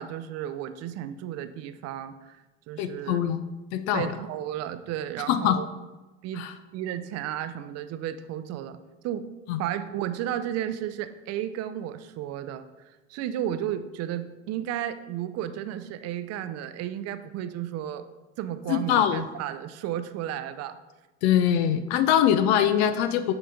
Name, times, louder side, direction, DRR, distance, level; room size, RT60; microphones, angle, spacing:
voice 1, 0.0-3.2 3.9-5.7 6.2-6.5 6.7-8.8 9.0-9.3 9.6-12.7 13.1-18.1 18.4-20.8, right 11 dB, 45° right, 12 dB, 0.5 m, -33 dB
voice 2, 2.8-3.4 3.7-4.1 5.3-5.6 6.4-6.5 9.5-9.6 18.7-19.2 21.2-23.3, left 10 dB, 65° left, 10 dB, 0.5 m, -23 dB
8.8 x 3.9 x 3.7 m, 1.1 s
hypercardioid pair, 75°, 34 cm